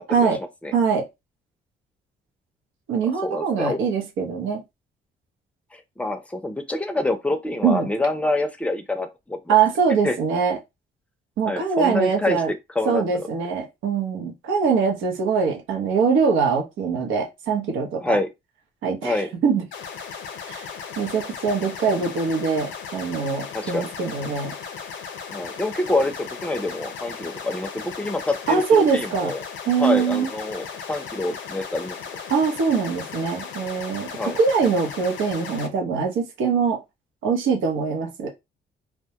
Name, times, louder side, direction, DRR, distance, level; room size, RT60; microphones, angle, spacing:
voice 1, 0.1-0.4 0.7-1.1 2.9-4.6 7.6-7.9 9.5-10.6 11.4-12.5 12.9-18.2 18.8-19.6 20.5-20.7 21.0-24.5 28.5-29.3 29.7-30.3 32.3-34.1 34.4-36.8 37.2-38.3, right 5 dB, 85° right, 0.8 m, -22 dB
voice 2, 3.2-3.8 5.7-9.5 10.0-10.2 11.4-12.4 12.8-13.3 18.0-18.3 19.0-19.3 23.5-23.9 25.3-29.4 29.8-32.0 34.1-34.4, left 2 dB, 5° left, 0.5 m, -26 dB
sound 1, 19.7-35.7, left 6 dB, 70° left, 0.6 m, -36 dB
2.2 x 2.1 x 2.7 m
cardioid pair, 90°, 20 cm